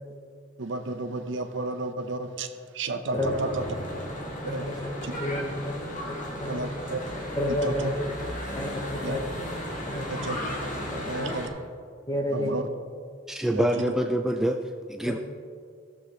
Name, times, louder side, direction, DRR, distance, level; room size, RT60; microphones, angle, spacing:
voice 1, 0.6-3.6 4.4-4.7 5.0-5.1 6.5-7.0 7.5-7.9 9.0-9.2 10.1-10.4 11.1-11.5 12.3-12.7 13.5-13.8, right 2 dB, 70° right, 7 dB, 0.8 m, -32 dB
Church bell / Traffic noise roadway noise, 3.1-11.5, equal, 40° left, 2.0 m, -35 dB
voice 2, 4.5-4.9 5.2-5.7 6.4-6.6 7.4-7.9 8.5-9.2 9.8-10.0 10.9-11.3 12.1-12.6, left 1 dB, 20° left, 2 dB, 0.7 m, -30 dB
voice 3, 13.3-15.2, right 1 dB, ahead, 4 dB, 0.3 m, -26 dB
16.5 x 7.2 x 3.3 m, 2.2 s
head